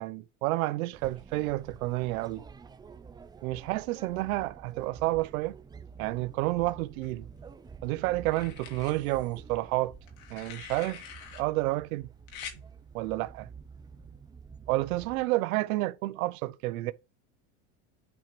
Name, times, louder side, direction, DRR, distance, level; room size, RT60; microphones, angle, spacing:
voice 1, 0.0-2.4 3.4-5.6 6.0-7.3 7.8-10.0 10.3-11.1 11.3-12.1 12.9-13.5 14.7-16.9, right 19 dB, 85° right, 0.7 m, -30 dB
sound 1, 0.9-15.3, right 6 dB, 10° right, 0.4 m, -49 dB
sound 2, 7.0-7.7 8.3-8.9 10.1-11.4 12.3-12.6 14.0-14.2, left 8 dB, 85° left, 2.9 m, -45 dB
8.5 x 4.3 x 3.1 m
supercardioid pair, 140°, 41 cm